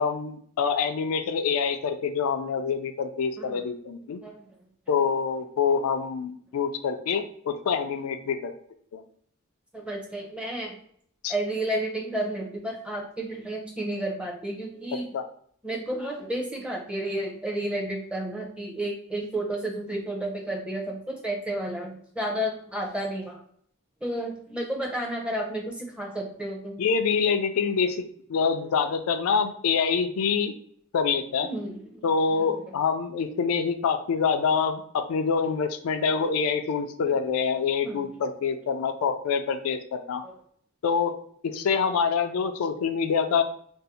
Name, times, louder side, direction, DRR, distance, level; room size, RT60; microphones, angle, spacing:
voice 1, 0.0-4.2 4.9-8.5 8.9-9.0 11.2-11.3 15.1-15.3 26.8-28.0 28.3-30.5 30.9-31.5 32.0-40.2 40.8-41.2 41.4-43.4, left 6 dB, 85° left, 8 dB, 0.3 m, -26 dB
voice 2, 9.7-10.7 11.3-15.1 15.6-23.4 24.0-26.8 31.4-32.7 37.8-38.0 40.2-40.3, right 1 dB, 5° right, -1 dB, 0.6 m, -32 dB
2.6 x 2.0 x 4.0 m, 0.63 s
head